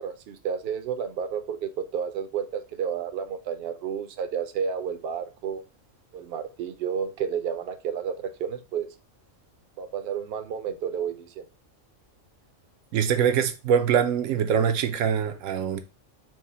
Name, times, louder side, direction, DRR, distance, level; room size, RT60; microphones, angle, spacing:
voice 1, 0.0-5.6 6.1-8.9 9.8-11.5, right 7 dB, 60° right, 0.7 m, -31 dB
voice 2, 12.9-15.8, right 8 dB, 85° right, 1.0 m, -23 dB
4.6 x 2.1 x 4.1 m
omnidirectional pair, 1.3 m